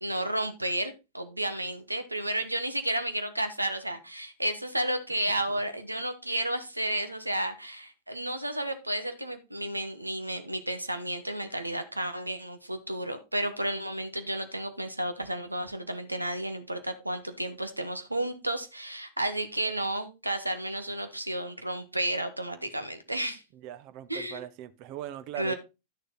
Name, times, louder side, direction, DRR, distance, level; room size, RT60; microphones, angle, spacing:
voice 1, 0.0-23.4 24.1-24.4 25.4-25.5, right 1 dB, 85° right, 1.2 m, -32 dB
voice 2, 23.5-25.5, right 12 dB, 45° right, 0.9 m, -40 dB
11.0 x 6.7 x 4.0 m
figure-of-eight pair, 90°, 0 cm